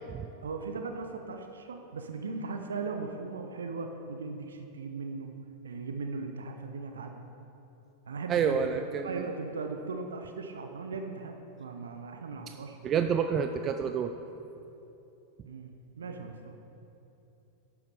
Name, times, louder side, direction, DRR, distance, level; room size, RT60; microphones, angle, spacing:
voice 1, 0.4-5.3 5.6-7.3 8.1-12.8 15.5-16.5, right 4 dB, 70° right, 5 dB, 0.7 m, -38 dB
voice 2, 8.3-9.2 12.8-14.1, right 7 dB, 30° right, 7 dB, 0.4 m, -28 dB
11.5 x 7.0 x 4.8 m, 2.9 s
figure-of-eight pair, 90°, 0 cm